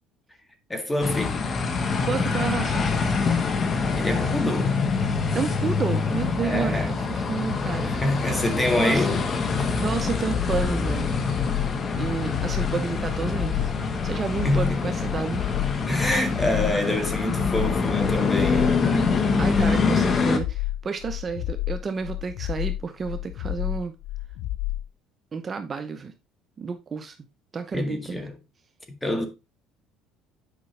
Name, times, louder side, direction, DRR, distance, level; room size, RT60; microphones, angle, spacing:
voice 1, 0.7-1.4 4.0-4.8 6.4-7.0 7.8-9.2 14.4-14.8 15.9-18.7 27.7-28.3 29.0-29.3, left 1 dB, 15° left, 1.7 m, -26 dB
sound 1, 1.0-20.4, left 4 dB, 35° left, 1.1 m, -25 dB
voice 2, 2.0-2.9 5.3-7.9 8.8-9.2 9.8-11.1 12.0-13.7 14.0-15.4 19.4-23.9 25.3-26.1 26.6-27.2 27.5-28.2, right 5 dB, 30° right, 0.8 m, -30 dB
sound 2, 9.9-24.9, left 16 dB, 70° left, 0.3 m, -31 dB
8.3 x 5.3 x 3.3 m
cardioid pair, 115°, 0 cm